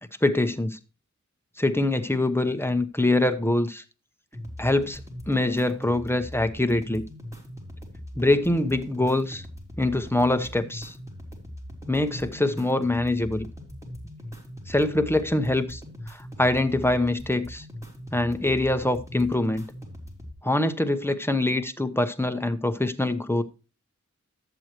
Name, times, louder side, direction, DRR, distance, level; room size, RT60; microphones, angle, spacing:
voice 1, 0.2-0.8 1.6-3.8 4.6-5.0 5.3-7.0 8.2-9.4 9.8-10.9 11.9-13.5 14.7-15.8 16.1-17.7 18.1-19.7 20.4-23.4, left 2 dB, 10° left, 1.0 m, -24 dB
sound 1, 4.3-20.3, equal, 10° right, 3.2 m, -41 dB
11.5 x 8.0 x 3.0 m
wide cardioid pair, 50°, 30 cm